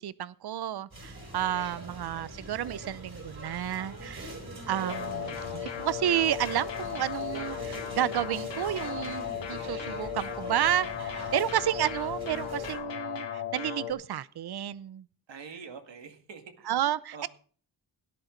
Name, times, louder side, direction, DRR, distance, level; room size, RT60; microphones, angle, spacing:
voice 1, 0.0-4.3 4.7-15.1 16.7-17.3, right 11 dB, 60° right, 19 dB, 0.6 m, -31 dB
sound 1, 0.9-12.8, right 2 dB, 40° right, 5.5 m, -42 dB
sound 2, 4.9-13.9, left 9 dB, 80° left, 1.5 m, -36 dB
voice 2, 15.3-16.7 17.1-17.3, right 5 dB, 80° right, 6 dB, 2.1 m, -46 dB
17.0 x 11.0 x 3.9 m, 0.43 s
wide cardioid pair, 125°, 43 cm